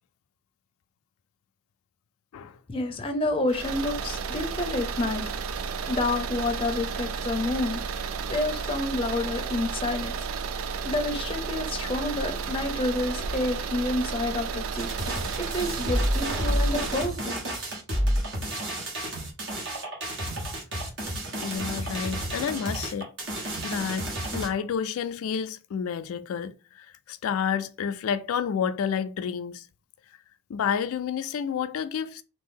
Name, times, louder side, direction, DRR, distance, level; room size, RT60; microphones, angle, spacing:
voice 1, 2.7-5.3 5.9-7.8 8.3-10.1 10.8-14.9 15.4-17.4, left 2 dB, 25° left, 0.5 m, -29 dB
sound 1, 3.5-17.1, right 5 dB, 80° right, 0.4 m, -32 dB
sound 2, 14.7-24.5, equal, 60° right, 1.3 m, -30 dB
voice 2, 21.4-23.1 23.4-24.1 24.3-26.5 27.1-29.6 30.5-32.2, left 7 dB, 90° left, 0.3 m, -29 dB
2.9 x 2.6 x 3.6 m
head